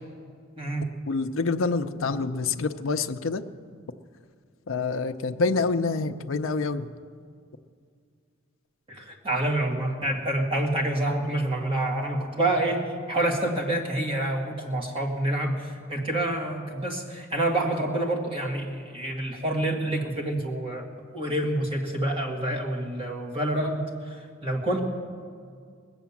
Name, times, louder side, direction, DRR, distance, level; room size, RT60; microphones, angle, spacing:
voice 1, 0.6-1.0 8.9-20.8 21.1-24.8, right 1 dB, 25° right, -1 dB, 1.9 m, -27 dB
voice 2, 1.1-3.4 4.7-6.9, left 4 dB, 65° left, 7 dB, 0.6 m, -27 dB
20.5 x 8.4 x 7.2 m, 2.1 s
head